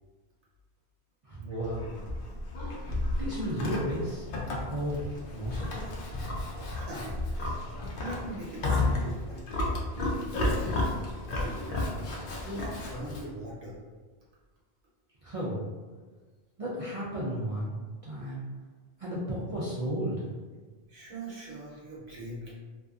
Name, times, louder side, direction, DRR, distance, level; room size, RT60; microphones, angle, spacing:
voice 1, 1.3-1.9 3.2-4.3 4.7-5.1 5.3-6.0 15.2-15.7 16.6-17.7 18.1-18.4 19.0-20.3, equal, 55° right, -7 dB, 0.4 m, -33 dB
Livestock farm animals working animals, 1.6-13.3, left 2 dB, 60° left, 0.7 m, -32 dB
voice 2, 6.7-7.3 7.7-9.6 10.4-12.1 12.4-13.8 20.9-22.5, right 1 dB, 80° right, -5 dB, 1.0 m, -42 dB
2.6 x 2.3 x 2.3 m, 1.4 s
omnidirectional pair, 1.1 m